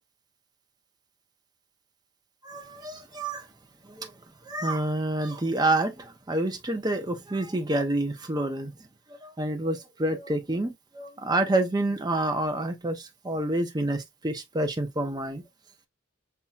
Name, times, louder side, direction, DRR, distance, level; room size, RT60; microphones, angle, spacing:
voice 1, 2.4-3.5 3.8-4.1 4.5-8.7 9.2-15.4, right 1 dB, 20° right, 0.7 m, -28 dB
5.6 x 2.9 x 2.4 m
head